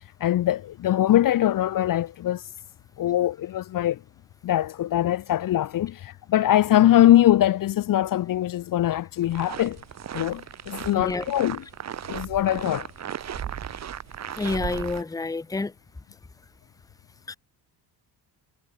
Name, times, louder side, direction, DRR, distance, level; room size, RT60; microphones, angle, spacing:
voice 1, 0.2-2.4 3.0-4.0 4.4-9.8 10.1-11.6 12.1-12.9, left 13 dB, 50° left, 0.7 m, -22 dB
sound 1, 9.2-15.0, right 9 dB, 40° right, 1.2 m, -36 dB
voice 2, 14.4-15.7 17.3-17.4, left 3 dB, 10° left, 0.8 m, -28 dB
cardioid pair, 165°, 43 cm